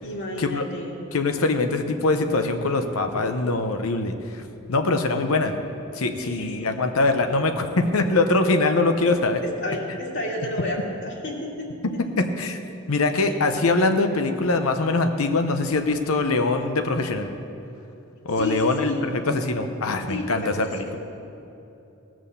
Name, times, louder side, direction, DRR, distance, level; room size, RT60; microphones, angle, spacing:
voice 1, 0.0-1.0 6.2-6.7 9.4-11.7 18.4-19.1 20.1-21.0, left 1 dB, 60° left, -2 dB, 2.3 m, -31 dB
voice 2, 1.1-4.4 4.7-5.5 5.9-9.4 11.8-12.6 12.9-17.3 18.2-20.6, left 3 dB, 80° left, 6 dB, 0.9 m, -23 dB
18.0 x 6.2 x 6.9 m, 2.9 s
head